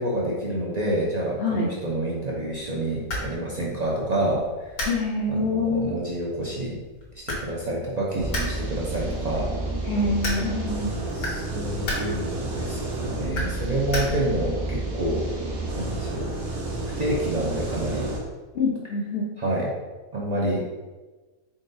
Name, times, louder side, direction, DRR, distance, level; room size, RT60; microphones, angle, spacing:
voice 1, 0.0-4.8 5.3-6.8 7.3-9.5 11.1-15.3 15.7-16.3 17.0-18.1 19.4-19.7 20.1-20.6, right 1 dB, 55° right, -5 dB, 0.4 m, -28 dB
sound 1, 2.5-14.5, left 1 dB, 85° left, 1.5 m, -36 dB
voice 2, 4.8-5.9 9.9-10.9 18.5-19.2, left 3 dB, 60° left, -3 dB, 0.6 m, -25 dB
sound 2, 8.2-18.2, right 2 dB, 75° right, 1.3 m, -30 dB
3.9 x 3.8 x 2.6 m, 1.2 s
omnidirectional pair, 1.5 m